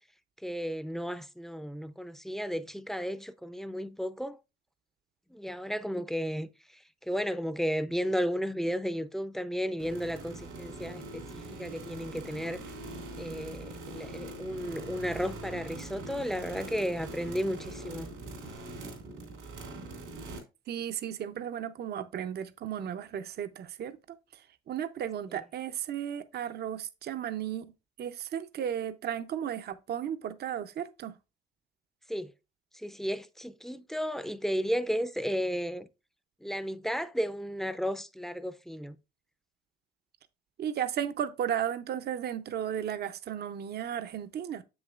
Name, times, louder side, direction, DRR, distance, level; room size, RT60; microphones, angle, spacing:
voice 1, 0.4-4.4 5.3-6.5 7.1-12.6 13.2-18.1 32.1-32.3 32.7-35.9 36.4-39.0, equal, ahead, 0.5 m, -33 dB
Electric Sweetener, 9.8-20.4, right 2 dB, 90° right, 3.0 m, -42 dB
voice 2, 20.7-24.0 24.3-27.7 28.0-31.1 40.6-44.6, right 9 dB, 55° right, 0.6 m, -34 dB
7.5 x 6.3 x 2.4 m
cardioid pair, 90°, 20 cm